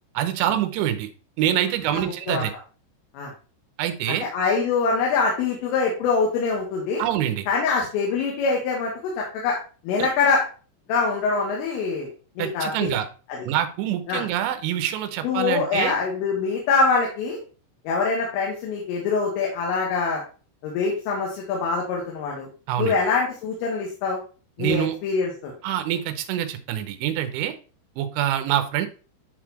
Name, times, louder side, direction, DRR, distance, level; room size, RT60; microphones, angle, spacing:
voice 1, 0.1-1.1 1.4-2.5 3.8-4.3 7.0-7.5 10.0-10.1 12.4-13.1 13.5-15.9 22.7-23.0 24.6-25.0 25.6-27.5 28.0-28.9, right 11 dB, 80° right, 8 dB, 2.9 m, -25 dB
voice 2, 1.9-2.5 3.1-3.3 4.1-7.0 7.5-9.6 9.8-10.4 10.9-12.1 12.4-12.9 14.1-14.2 15.2-17.4 17.9-20.2 20.6-22.5 22.8-24.2 24.6-25.5, left 4 dB, 80° left, -2 dB, 3.9 m, -24 dB
11.0 x 4.1 x 3.0 m, 0.37 s
omnidirectional pair, 5.8 m